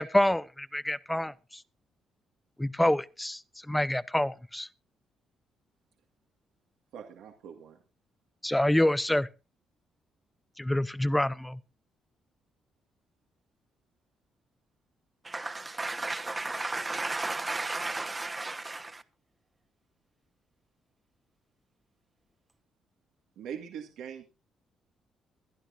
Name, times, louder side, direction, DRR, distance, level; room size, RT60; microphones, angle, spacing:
voice 1, 0.0-1.3 2.6-3.4 3.7-4.7 8.4-9.3 10.6-11.6, left 1 dB, 5° left, 0.7 m, -26 dB
voice 2, 6.9-7.8 23.4-24.3, right 8 dB, 85° right, 1.9 m, -42 dB
voice 3, 15.2-19.0, right 2 dB, 20° right, 1.2 m, -34 dB
22.0 x 11.5 x 2.7 m
cardioid pair, 90°, 0 cm